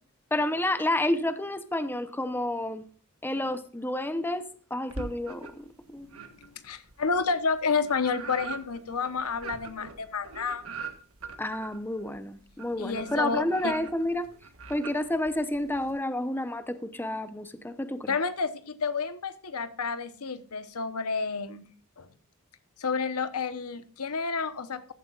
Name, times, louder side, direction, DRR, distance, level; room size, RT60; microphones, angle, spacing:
voice 1, 0.3-2.8 3.2-6.1 11.4-14.3 14.7-18.1, left 1 dB, 10° left, 10 dB, 0.7 m, -30 dB
sound 1, 4.9-5.7 6.1-15.9, right 4 dB, 70° right, 1.5 m, -43 dB
voice 2, 6.2-10.6 12.8-13.7 18.1-21.7 22.0-22.1 22.8-24.9, left 5 dB, 90° left, 12 dB, 1.0 m, -30 dB
15.0 x 11.5 x 2.4 m, 0.42 s
head